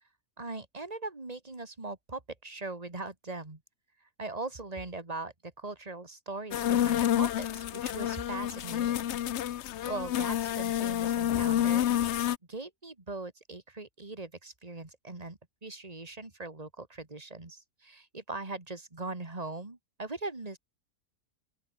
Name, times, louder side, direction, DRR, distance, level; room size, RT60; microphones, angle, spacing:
voice 1, 0.4-3.6 4.2-9.2 9.9-11.9 12.5-20.6, right 3 dB, 25° right, 2.7 m, -40 dB
sound 1, 6.5-12.4, left 11 dB, 60° left, 0.9 m, -29 dB
open air
omnidirectional pair, 1.5 m